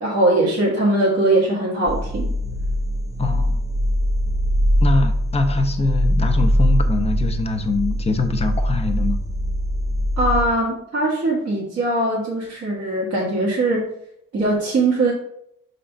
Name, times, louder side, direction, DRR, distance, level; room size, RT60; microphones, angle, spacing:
voice 1, 0.0-2.3 10.2-13.9 14.3-15.1, right 2 dB, 50° right, -5 dB, 1.7 m, -20 dB
sound 1, 1.9-10.4, equal, 10° right, 0.7 m, -21 dB
voice 2, 3.2-3.6 4.8-9.2, left 3 dB, 20° left, 5 dB, 0.8 m, -23 dB
5.4 x 4.0 x 4.4 m, 0.75 s
cardioid pair, 90°, 30 cm